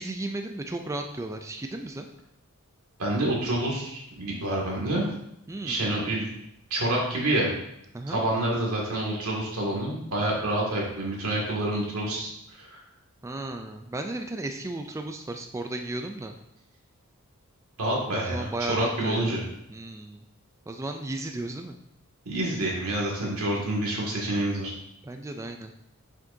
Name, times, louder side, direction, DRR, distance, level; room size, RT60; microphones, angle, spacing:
voice 1, 0.0-2.1 5.5-5.9 7.9-8.2 13.2-16.4 18.1-19.4 19.7-20.2 20.7-21.8 25.0-25.7, right 2 dB, 15° right, 5 dB, 0.3 m, -34 dB
voice 2, 3.0-5.0 5.6-6.3 6.7-7.5 8.1-12.3 12.6-12.8 17.8-19.4 22.3-24.7, right 1 dB, 90° right, -2 dB, 2.1 m, -27 dB
7.2 x 6.1 x 2.7 m, 0.79 s
head